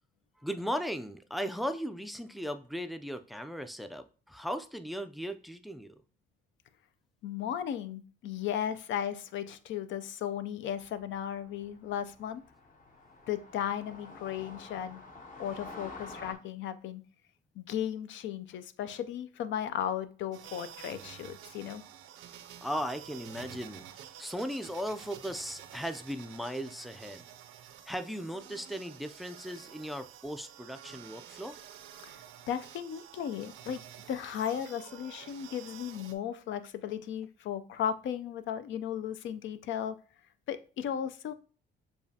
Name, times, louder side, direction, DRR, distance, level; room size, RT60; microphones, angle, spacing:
voice 1, 0.4-6.0 22.6-27.3 27.9-31.6 35.2-35.3, equal, ahead, 10 dB, 0.3 m, -37 dB
voice 2, 7.2-12.4 13.3-15.0 15.4-17.0 17.6-21.8 32.0-32.1 32.5-33.8 34.1-40.0 40.5-41.3, left 9 dB, 70° left, 12 dB, 0.5 m, -35 dB
sound 1, 10.8-16.3, left 3 dB, 45° left, 0.9 m, -49 dB
sound 2, 20.3-36.1, right 10 dB, 80° right, 0.5 m, -50 dB
6.8 x 2.4 x 2.7 m, 0.37 s
cardioid pair, 90°, 20 cm